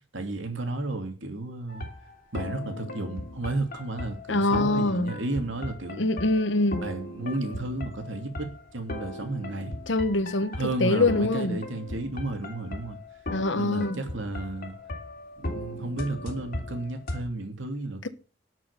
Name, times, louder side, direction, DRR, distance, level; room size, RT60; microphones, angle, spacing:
voice 1, 0.1-1.9 2.3-6.0 6.8-9.8 10.5-13.0 13.5-14.7 15.4-18.1, right 2 dB, 75° right, 2.8 m, -33 dB
sound 1, 1.7-17.2, left 1 dB, 50° left, 3.0 m, -38 dB
voice 2, 4.3-5.1 5.9-6.8 9.9-11.6 13.3-14.0 18.0-18.1, left 2 dB, 70° left, 1.1 m, -24 dB
11.5 x 6.2 x 6.9 m
head